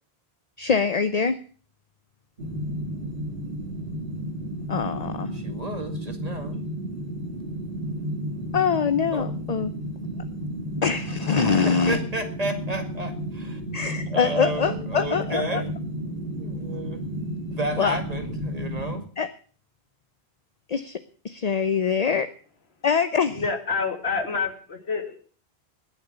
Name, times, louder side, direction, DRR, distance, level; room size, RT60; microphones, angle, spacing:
voice 1, 0.6-1.4 4.7-5.3 8.5-9.7 10.8-12.0 13.7-15.6 17.8-18.0 19.2-19.3 20.7-21.0 21.2-22.3 22.8-23.4, left 6 dB, 40° left, 11 dB, 0.8 m, -24 dB
sound 1, 2.4-19.0, right 1 dB, 55° right, 2.9 m, -32 dB
voice 2, 5.3-6.6 9.1-9.3 11.4-13.6 14.1-15.8 16.1-17.0 17.5-19.0, right 2 dB, 35° right, 6 dB, 2.1 m, -32 dB
voice 3, 23.3-25.2, left 4 dB, 75° left, 6 dB, 2.2 m, -28 dB
20.0 x 7.1 x 6.8 m, 0.42 s
omnidirectional pair, 1.1 m